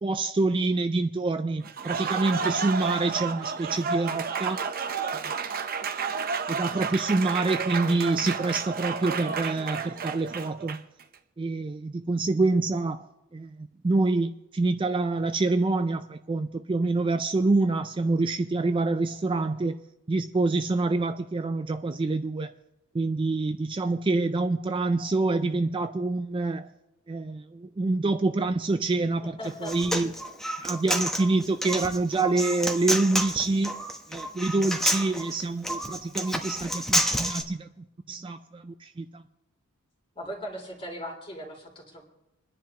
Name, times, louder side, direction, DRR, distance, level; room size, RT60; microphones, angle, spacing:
voice 1, 0.0-4.7 5.1-5.2 6.5-10.8 11.4-19.8 20.1-22.5 22.9-26.7 27.1-30.1 30.6-33.8 34.1-37.7 38.1-39.2, right 3 dB, 25° right, 0.4 m, -26 dB
Applause, 1.6-11.0, right 6 dB, 45° right, 0.7 m, -31 dB
voice 2, 29.2-29.7 40.1-42.0, equal, 25° left, 2.8 m, -38 dB
Human voice, 29.4-37.4, equal, ahead, 1.0 m, -29 dB
28.0 x 10.5 x 2.9 m
head